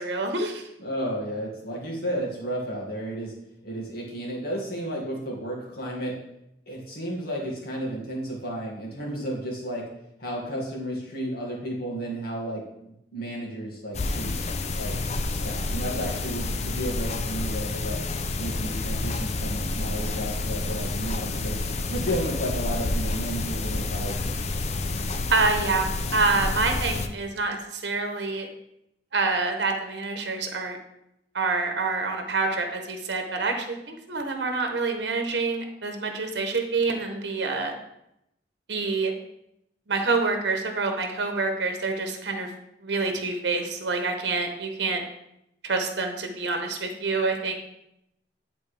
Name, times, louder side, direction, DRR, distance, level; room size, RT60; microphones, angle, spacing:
voice 1, 0.0-0.7 25.3-25.9 26.1-28.5 29.1-30.8 31.3-37.7 38.7-39.1 39.9-42.5 42.8-45.0 45.6-47.5, right 3 dB, 75° right, 4 dB, 0.9 m, -27 dB
voice 2, 0.8-3.3 3.6-6.1 6.7-9.9 10.2-14.4 14.7-15.0 15.3-18.0 18.4-21.6 21.9-24.3, right 1 dB, 60° left, -3 dB, 2.1 m, -32 dB
sound 1, 13.9-27.1, left 2 dB, 40° left, 0.5 m, -29 dB
9.8 x 4.1 x 3.3 m, 0.82 s
head